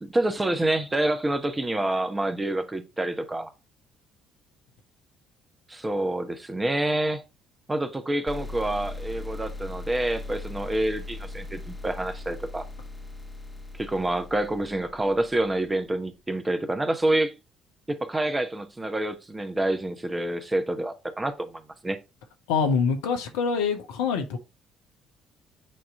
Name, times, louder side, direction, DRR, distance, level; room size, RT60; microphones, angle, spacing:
voice 1, 0.0-3.5 5.7-7.2 7.7-12.6 13.8-17.3 17.9-22.0, right 1 dB, 20° right, 1.1 m, -27 dB
sound 1, 8.3-15.8, left 2 dB, 15° left, 1.0 m, -39 dB
voice 2, 22.5-24.4, left 5 dB, 70° left, 1.0 m, -25 dB
8.6 x 3.0 x 3.8 m
figure-of-eight pair, 50°, 0 cm